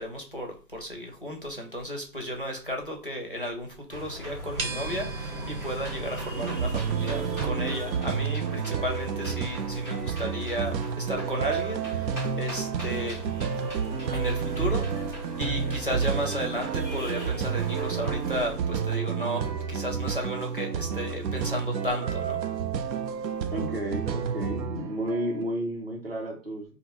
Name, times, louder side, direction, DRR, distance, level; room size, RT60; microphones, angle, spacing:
voice 1, 0.0-13.2 14.1-14.8 15.4-22.4, equal, 35° left, 1 dB, 0.5 m, -34 dB
sound 1, 3.9-18.6, equal, 10° right, 0.9 m, -40 dB
sound 2, 4.6-7.5, right 3 dB, 60° right, 0.9 m, -35 dB
sound 3, 6.3-25.4, right 7 dB, 85° right, 0.6 m, -30 dB
voice 2, 23.5-26.6, equal, 35° right, 0 dB, 0.7 m, -32 dB
2.6 x 2.2 x 3.9 m, 0.37 s
hypercardioid pair, 170°, 50 cm